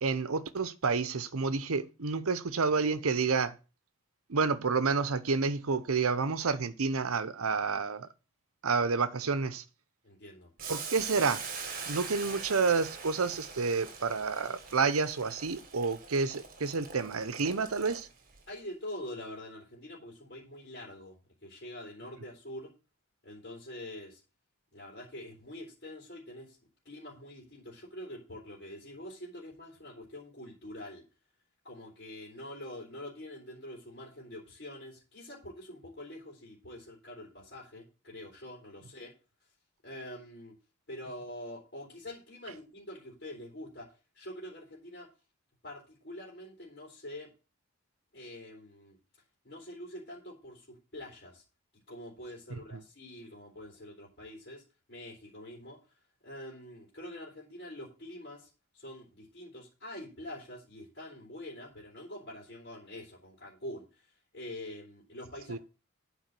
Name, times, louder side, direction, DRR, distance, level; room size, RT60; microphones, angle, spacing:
voice 1, 0.0-3.6 4.3-8.1 8.6-9.6 10.7-11.4 11.9-18.1 52.5-52.8 65.5-65.6, right 4 dB, 75° right, 0.8 m, -29 dB
voice 2, 10.0-10.5 18.5-21.2 21.4-22.7 23.2-24.2 24.7-26.6 26.9-31.0 31.6-39.1 39.8-40.5 40.9-45.1 45.6-47.3 48.1-49.0 49.4-51.4 51.9-54.6 54.9-55.8 56.2-58.5 58.7-63.9 64.3-65.6, left 1 dB, 50° left, 3.4 m, -45 dB
Boiling, 10.6-18.4, right 5 dB, 40° right, 1.7 m, -43 dB
8.4 x 4.8 x 7.5 m
head